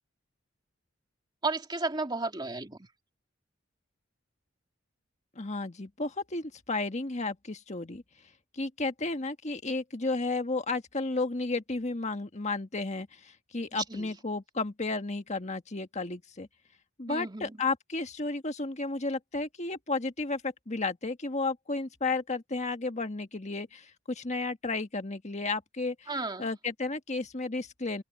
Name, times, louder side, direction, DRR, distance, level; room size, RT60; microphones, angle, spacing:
voice 1, 1.4-2.8 13.9-14.1 17.1-17.5 26.1-26.5, right 3 dB, 20° right, 2.6 m, -33 dB
voice 2, 5.3-8.0 8.6-16.5 17.0-26.1 26.4-28.0, left 3 dB, 35° left, 1.6 m, -33 dB
open air
head